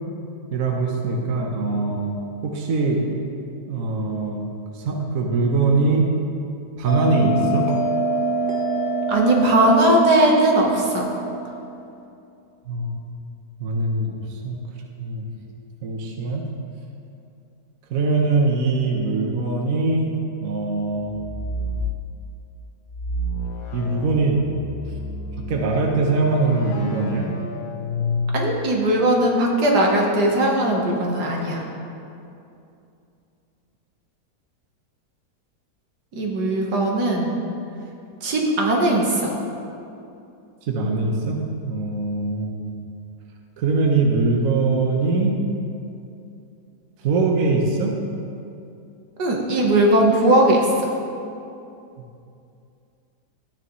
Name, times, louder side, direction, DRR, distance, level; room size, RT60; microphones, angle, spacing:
voice 1, 0.5-2.2 2.4-3.0 3.7-4.4 4.7-6.1 6.8-7.7 12.7-13.1 13.6-14.6 15.0-15.3 15.8-16.4 17.9-20.1 20.4-21.2 23.7-24.4 25.5-27.3 40.7-42.7 43.6-45.4 47.0-47.9, right 3 dB, 60° right, 1 dB, 1.3 m, -22 dB
Bell, 6.8-11.9, right 2 dB, 35° right, 1.4 m, -25 dB
voice 2, 9.1-11.1 28.3-31.6 36.1-37.4 38.2-39.4 49.2-50.9, right 1 dB, 80° right, 0 dB, 1.9 m, -19 dB
sound 1, 21.1-22.0 22.9-28.9, left 2 dB, 85° left, 1.4 m, -30 dB
13.5 x 9.6 x 3.1 m, 2.6 s
omnidirectional pair, 1.7 m